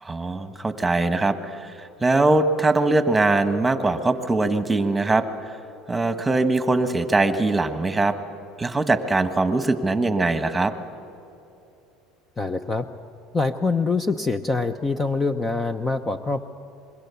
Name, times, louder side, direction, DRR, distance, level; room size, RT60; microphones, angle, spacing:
voice 1, 0.0-1.7 2.0-5.2 5.9-8.1 8.6-10.7, right 2 dB, 10° right, 9 dB, 1.4 m, -21 dB
voice 2, 12.4-12.9 13.3-16.5, left 3 dB, 20° left, 9 dB, 0.7 m, -24 dB
26.0 x 22.0 x 7.0 m, 2.8 s
supercardioid pair, 125°, 0 cm